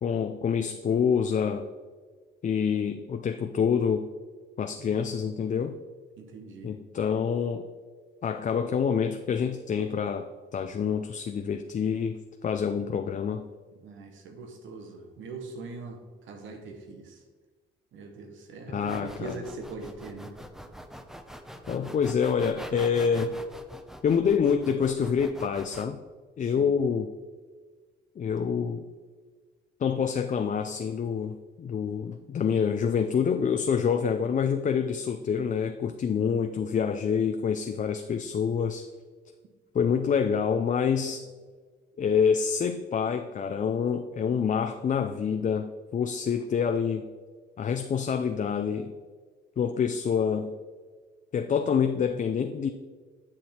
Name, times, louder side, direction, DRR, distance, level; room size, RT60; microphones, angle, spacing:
voice 1, 0.0-1.7 2.4-4.1 4.6-5.8 6.6-7.7 8.2-13.4 18.7-19.4 21.7-23.4 24.0-26.0 26.4-27.1 28.2-28.9 29.8-38.9 39.7-41.3 42.0-47.1 47.6-48.9 49.6-50.5 51.3-52.7, left 7 dB, 40° left, 7 dB, 0.5 m, -27 dB
voice 2, 4.8-5.4 6.2-6.8 13.8-17.2 17.9-20.4 26.4-26.7 39.8-40.3, right 3 dB, 80° right, 5 dB, 1.4 m, -42 dB
sound 1, 18.9-25.9, equal, ahead, 0.7 m, -43 dB
9.7 x 6.1 x 4.4 m, 1.4 s
cardioid pair, 90°, 20 cm